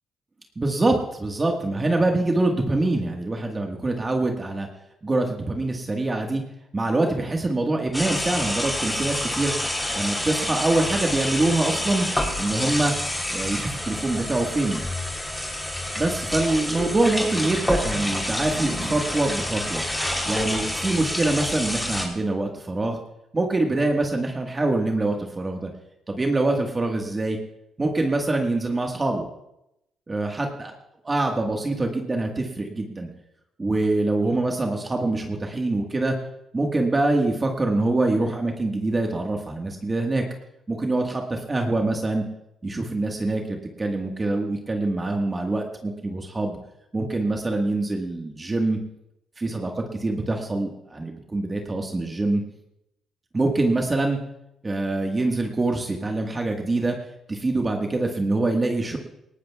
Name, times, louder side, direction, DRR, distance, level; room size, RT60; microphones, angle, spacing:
voice 1, 0.5-4.7 5.0-6.4 6.7-9.5 9.9-12.1 12.4-12.9 13.3-14.8 16.0-19.8 20.2-23.0 23.3-25.7 26.1-27.4 27.8-29.2 30.1-30.7 31.0-33.1 33.6-36.2 36.5-40.2 40.7-42.2 42.6-46.5 46.9-48.8 49.4-52.4 53.3-54.2 54.6-57.0 57.3-59.0, right 2 dB, 25° right, 2 dB, 1.5 m, -24 dB
sound 1, 7.9-22.1, left 1 dB, 10° left, 3.3 m, -28 dB
19.0 x 18.0 x 2.4 m, 0.85 s
cardioid pair, 90°, 0 cm